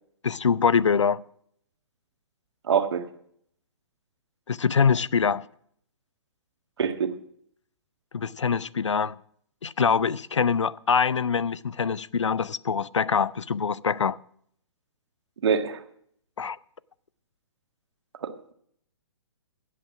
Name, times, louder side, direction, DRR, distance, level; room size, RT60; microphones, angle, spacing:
voice 1, 0.2-1.2 4.5-5.5 8.1-9.2 9.6-14.2 16.4-16.6, left 6 dB, 85° left, 0.5 m, -24 dB
voice 2, 2.7-3.0 6.8-7.1 15.4-15.8 18.2-18.3, right 7 dB, 65° right, 1.6 m, -24 dB
16.5 x 8.0 x 4.8 m
figure-of-eight pair, 125°, 15 cm